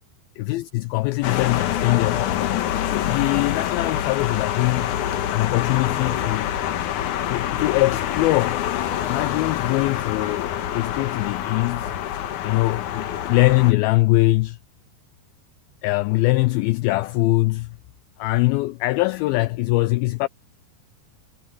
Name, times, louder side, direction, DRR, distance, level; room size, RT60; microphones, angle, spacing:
voice 1, 0.4-4.9 5.3-6.5 7.3-8.6 9.1-12.0 12.4-14.6 15.8-17.8 18.2-20.3, left 21 dB, 85° left, 2.1 m, -22 dB
sound 1, 1.2-13.7, left 11 dB, 65° left, 2.2 m, -26 dB
Keyboard (musical), 1.2-13.3, right 2 dB, 30° right, 7.5 m, -51 dB
omnidirectional pair, 4.8 m